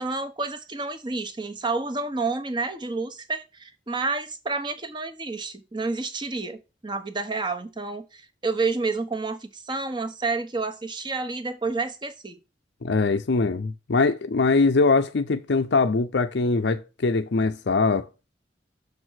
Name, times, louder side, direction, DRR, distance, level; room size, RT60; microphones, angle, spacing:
voice 1, 0.0-12.4, right 3 dB, 25° right, 1.1 m, -29 dB
voice 2, 12.8-18.1, left 3 dB, 75° left, 0.6 m, -22 dB
6.5 x 4.6 x 6.3 m
head